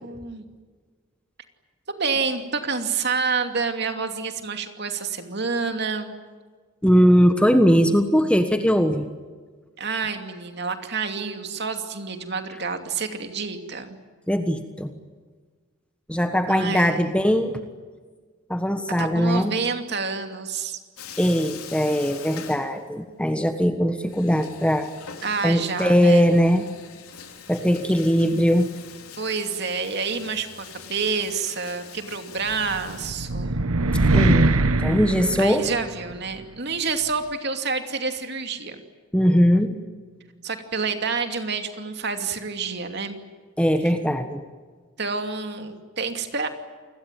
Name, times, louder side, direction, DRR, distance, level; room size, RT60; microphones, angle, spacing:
voice 1, 0.0-0.4 1.9-6.1 9.8-14.0 16.5-17.1 19.0-20.8 25.2-26.4 29.2-33.6 35.4-38.8 40.4-43.2 45.0-46.5, right 5 dB, 50° right, 6 dB, 2.7 m, -28 dB
voice 2, 6.8-9.1 14.3-14.9 16.1-17.6 18.5-19.5 21.2-24.9 25.4-26.7 27.5-28.7 34.1-34.5 34.8-35.7 39.1-39.8 43.6-44.4, equal, 5° left, 7 dB, 1.3 m, -20 dB
Bathtub (filling or washing), 21.0-23.2 23.5-23.6 24.0-33.1, left 7 dB, 85° left, 3.7 m, -43 dB
sound 1, 32.7-36.1, right 2 dB, 80° right, 1.2 m, -22 dB
28.5 x 21.0 x 9.2 m, 1.5 s
head